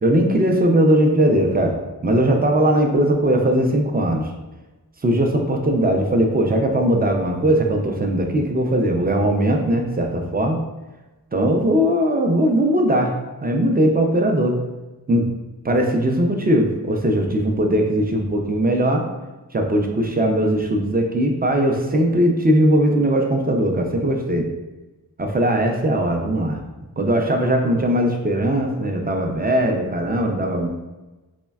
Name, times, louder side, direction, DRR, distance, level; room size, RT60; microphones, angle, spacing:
voice 1, 0.0-1.7 2.0-4.3 5.0-10.6 11.3-13.1 13.4-14.6 15.1-15.3 15.6-19.1 19.5-24.5 25.2-26.6 27.0-30.7, right 1 dB, 25° right, 2 dB, 0.3 m, -19 dB
3.2 x 2.1 x 2.2 m, 1.1 s
wide cardioid pair, 50°, 39 cm